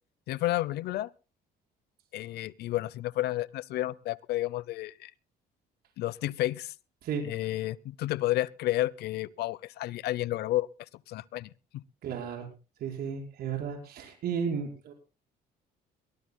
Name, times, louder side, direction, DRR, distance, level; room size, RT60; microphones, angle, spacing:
voice 1, 0.3-1.1 2.1-5.1 6.0-6.7 7.2-10.7 11.1-11.8, left 15 dB, 75° left, 0.7 m, -31 dB
voice 2, 12.0-12.5 12.8-14.9, right 6 dB, 65° right, 5.4 m, -33 dB
23.0 x 17.5 x 2.2 m
cardioid pair, 110°, 17 cm